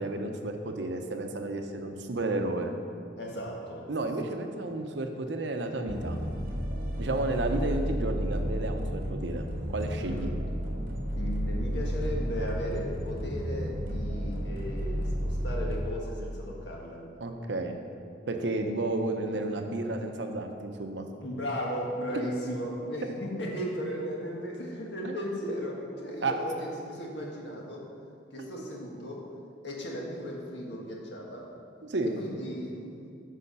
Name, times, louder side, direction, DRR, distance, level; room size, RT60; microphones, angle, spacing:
voice 1, 0.0-2.7 3.9-6.2 7.0-10.3 17.2-17.8 18.3-21.0 25.0-25.1 26.2-26.3 31.9-32.2, right 2 dB, 70° right, 5 dB, 0.8 m, -32 dB
voice 2, 3.2-3.9 10.0-10.4 11.1-17.0 19.3-19.4 21.2-27.8 28.3-29.2 29.6-31.5 32.0-32.9, equal, 70° left, -2 dB, 1.6 m, -36 dB
sound 1, 5.9-15.8, equal, 50° right, 1.0 m, -32 dB
8.5 x 5.7 x 5.6 m, 2.4 s
head